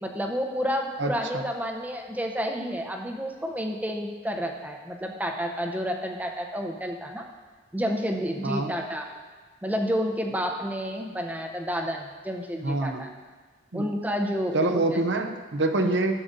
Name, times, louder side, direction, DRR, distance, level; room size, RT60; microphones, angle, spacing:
voice 1, 0.0-7.2 7.7-9.1 9.6-13.1 13.7-14.8 15.8-15.9, equal, 10° right, 2 dB, 0.7 m, -30 dB
voice 2, 1.0-1.4 8.4-8.7 12.6-13.1 13.7-13.9 14.5-16.2, right 2 dB, 65° right, 5 dB, 0.7 m, -26 dB
14.0 x 7.7 x 2.7 m, 1.4 s
head